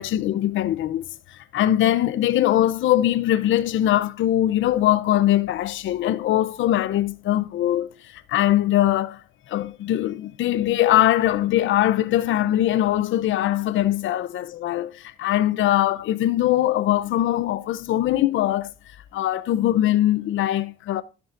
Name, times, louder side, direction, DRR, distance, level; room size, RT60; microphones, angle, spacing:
voice 1, 0.0-9.2 9.5-18.7 19.1-21.0, left 13 dB, 75° left, 0.6 m, -22 dB
13.0 x 6.8 x 2.5 m
cardioid pair, 90°, 20 cm